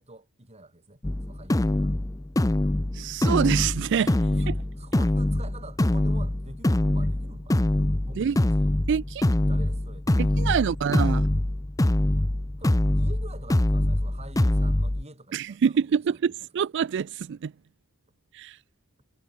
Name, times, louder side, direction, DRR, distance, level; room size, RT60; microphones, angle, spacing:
voice 1, 0.0-1.9 4.4-7.7 8.0-8.7 9.5-10.4 12.6-16.2, right 2 dB, 30° right, 7.0 m, -47 dB
sound 1, 1.0-15.0, left 1 dB, 15° left, 0.6 m, -24 dB
voice 2, 2.9-4.5 8.2-8.4 8.9-9.2 10.2-11.3 15.3-17.5 18.3-18.6, right 7 dB, 60° right, 0.4 m, -26 dB
head